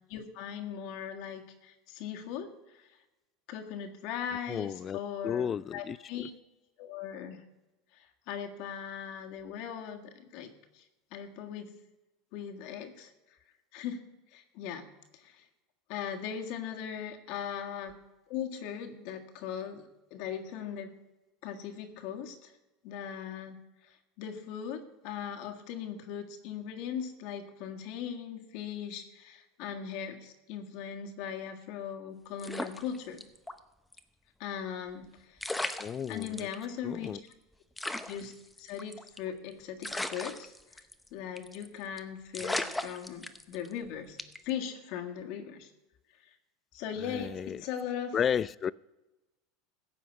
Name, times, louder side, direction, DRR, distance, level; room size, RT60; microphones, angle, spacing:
voice 1, 0.1-3.0 3.5-6.3 6.8-7.4 7.9-10.9 11.1-11.8 12.3-13.1 13.7-14.9 15.1-15.5 15.9-18.0 18.3-20.9 21.4-22.5 22.8-23.6 23.8-33.2 34.4-35.5 36.1-37.1 38.1-38.3 38.6-40.8 41.1-44.2 44.4-45.7 46.2-46.4 46.7-48.2, left 8 dB, 60° left, 4 dB, 1.7 m, -39 dB
voice 2, 4.5-6.3 35.8-36.5 36.8-37.2 47.0-47.6 48.1-48.7, left 8 dB, 30° left, 22 dB, 0.3 m, -33 dB
sound 1, 32.4-33.6 33.9-34.0 35.0-35.1 35.4-36.5 37.0-37.1 37.3-37.4 37.8-39.3 39.8-41.1 41.4-41.7 42.0-42.1 42.3-43.7 44.2-44.5, left 1 dB, 5° left, 0.8 m, -36 dB
15.0 x 5.8 x 8.1 m, 1.1 s
supercardioid pair, 120°, 0 cm